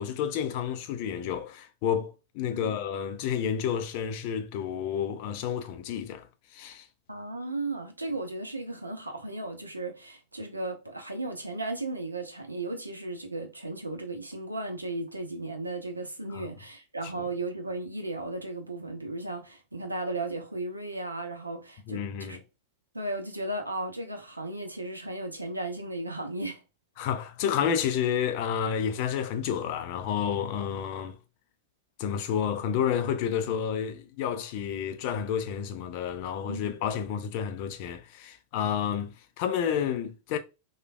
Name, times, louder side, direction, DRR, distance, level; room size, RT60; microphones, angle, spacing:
voice 1, 0.0-6.3 6.5-6.9 16.3-16.4 17.2-17.3 21.9-22.4 27.0-31.2 32.0-40.4, left 8 dB, 45° left, 0.4 m, -30 dB
voice 2, 7.1-22.4 22.9-26.6 36.5-36.6, right 2 dB, 85° right, 0.5 m, -35 dB
3.1 x 2.2 x 2.4 m
figure-of-eight pair, 90°, 0 cm